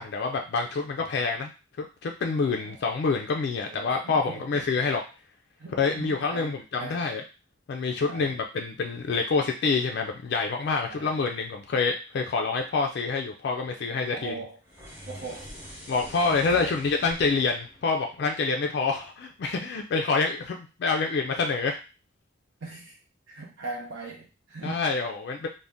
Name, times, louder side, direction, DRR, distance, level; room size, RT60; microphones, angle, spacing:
voice 1, 0.0-1.5 1.8-5.0 5.7-7.2 7.7-14.3 15.9-21.8 24.6-25.5, left 4 dB, 55° left, 3 dB, 0.3 m, -27 dB
voice 2, 1.0-1.3 2.4-2.8 3.6-4.5 5.6-7.0 8.0-8.3 10.9-11.2 14.1-14.6 15.1-15.5 16.2-16.8 22.6-23.0 23.3-24.9, right 3 dB, 65° right, -2 dB, 0.6 m, -40 dB
sound 1, 14.6-19.0, equal, 10° right, 0.7 m, -45 dB
2.6 x 2.1 x 3.4 m, 0.31 s
head